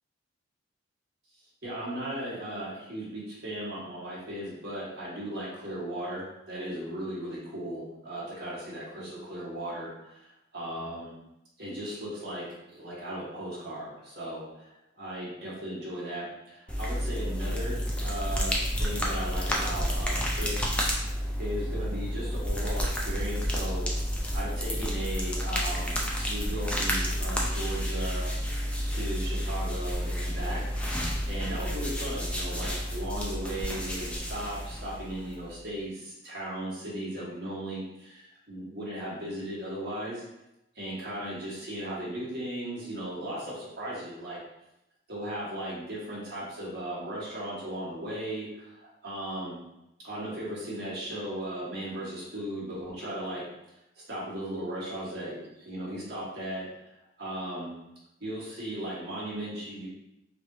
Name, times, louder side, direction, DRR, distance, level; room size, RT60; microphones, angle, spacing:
voice 1, 1.6-11.1 11.6-14.7 15.0-20.7 21.4-23.8 24.3-28.3 28.8-40.2 40.7-44.4 45.1-49.6 50.0-53.4 54.1-56.7 57.2-57.7 58.2-59.9, right 1 dB, 55° right, -7 dB, 1.2 m, -37 dB
sound 1, 16.7-35.6, equal, 5° left, 0.3 m, -30 dB
3.1 x 2.8 x 2.6 m, 0.87 s
head